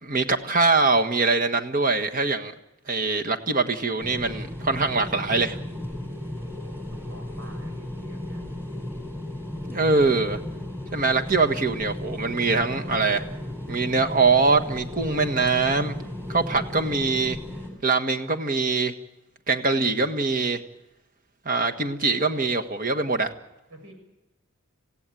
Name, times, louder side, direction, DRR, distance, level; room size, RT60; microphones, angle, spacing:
voice 1, 0.0-2.5 2.9-5.6 9.7-10.4 10.9-13.2 13.7-16.0 16.3-17.4 17.8-18.9 19.5-20.6 21.4-23.3, right 3 dB, 40° right, 5 dB, 1.5 m, -23 dB
sound 1, 4.0-17.7, left 1 dB, 10° right, 4.3 m, -35 dB
voice 2, 6.5-8.4 21.7-21.8 23.7-23.9, right 1 dB, 75° right, 4 dB, 6.6 m, -48 dB
27.0 x 16.5 x 9.2 m, 0.93 s
head